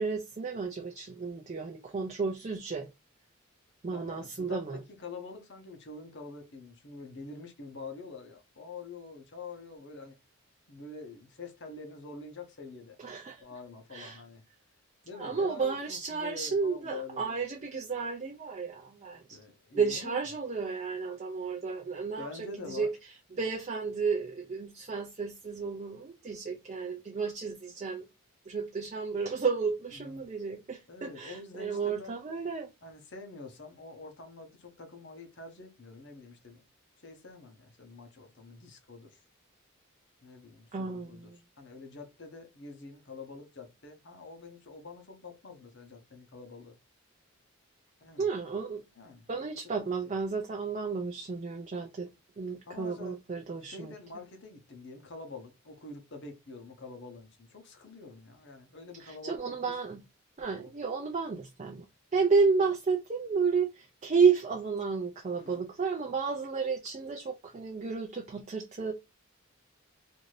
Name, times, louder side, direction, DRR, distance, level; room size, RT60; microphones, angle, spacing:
voice 1, 0.0-2.9 3.8-4.8 13.0-13.4 13.9-14.2 15.2-19.2 19.7-22.9 23.4-28.1 28.5-32.7 40.7-41.4 48.2-48.8 49.3-52.1 52.4-53.9 59.0-60.0 60.4-61.8 62.1-68.9, right 5 dB, 30° right, 0.4 m, -32 dB
voice 2, 3.9-10.1 10.7-13.0 13.4-14.4 15.0-17.4 19.3-20.2 22.2-22.9 29.9-30.2 30.9-32.2 32.8-36.6 37.0-39.2 40.2-46.8 48.0-48.3 48.9-50.1 52.7-53.2 53.6-60.0 60.6-60.7 65.4-65.7, left 3 dB, 55° left, 0.8 m, -46 dB
2.6 x 2.6 x 3.1 m
head